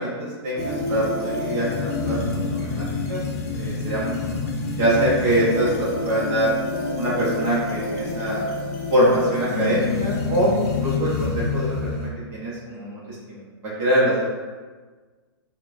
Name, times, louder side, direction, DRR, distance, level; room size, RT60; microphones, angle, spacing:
voice 1, 0.0-3.2 3.5-4.3 4.8-6.5 7.0-8.4 8.9-13.0 13.3-13.4 13.6-14.1, right 1 dB, 20° right, -7 dB, 0.8 m, -24 dB
sound 1, 0.6-12.1, left 4 dB, 35° left, 0.5 m, -27 dB
4.8 x 2.2 x 2.6 m, 1.4 s
hypercardioid pair, 165°, 14 cm